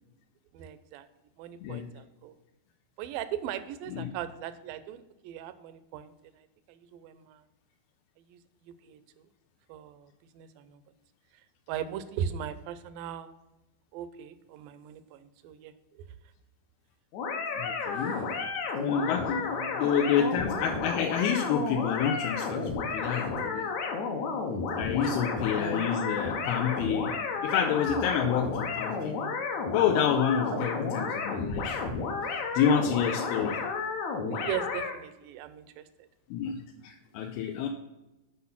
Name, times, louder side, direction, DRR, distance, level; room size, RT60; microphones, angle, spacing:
voice 1, 0.5-1.1 1.4-2.4 3.0-7.4 8.3-8.4 8.7-9.3 9.7-10.8 11.3-13.4 13.9-16.0 18.0-18.3 19.9-20.0 25.0-25.1 30.5-30.6 34.3-36.1, right 10 dB, 80° right, 12 dB, 2.1 m, -39 dB
sound 1, 17.1-34.9, left 4 dB, 70° left, 1.8 m, -32 dB
voice 2, 17.6-18.2 18.8-23.7 24.8-27.1 27.4-29.2 29.7-31.8 32.2-33.6 36.3-37.7, left 8 dB, 90° left, 2 dB, 2.6 m, -28 dB
8.4 x 5.4 x 5.7 m, 0.98 s
omnidirectional pair, 4.4 m